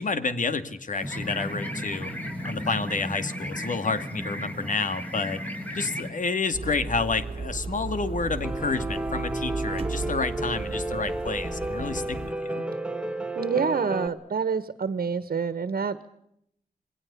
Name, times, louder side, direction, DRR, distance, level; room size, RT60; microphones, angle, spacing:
voice 1, 0.0-2.1 2.4-5.4 5.7-12.7, left 4 dB, 60° left, 11 dB, 2.3 m, -29 dB
sound 1, 1.0-6.1, equal, 10° left, 6.1 m, -34 dB
sound 2, 6.5-12.3, right 3 dB, 40° right, 2.0 m, -35 dB
Piano, 8.4-14.1, right 1 dB, 5° right, 1.8 m, -32 dB
voice 2, 13.3-16.1, right 6 dB, 80° right, 13 dB, 1.5 m, -27 dB
27.5 x 21.0 x 6.9 m, 0.73 s
wide cardioid pair, 125°, 15 cm